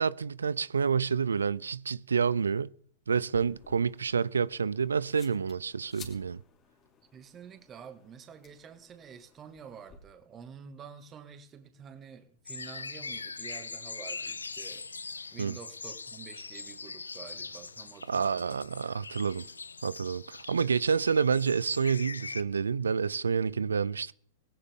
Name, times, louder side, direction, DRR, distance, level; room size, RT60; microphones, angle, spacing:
voice 1, 0.0-2.7 3.1-6.4 15.4-15.6 18.1-19.5 19.8-24.1, right 6 dB, 80° right, 0.5 m, -28 dB
sound 1, 3.1-10.0, left 4 dB, 30° left, 2.8 m, -55 dB
voice 2, 7.1-14.9 15.3-18.6 20.6-20.7, right 7 dB, 25° right, 2.0 m, -49 dB
sound 2, 12.5-22.4, left 4 dB, 85° left, 0.5 m, -42 dB
18.0 x 17.0 x 3.7 m
hypercardioid pair, 105°, 0 cm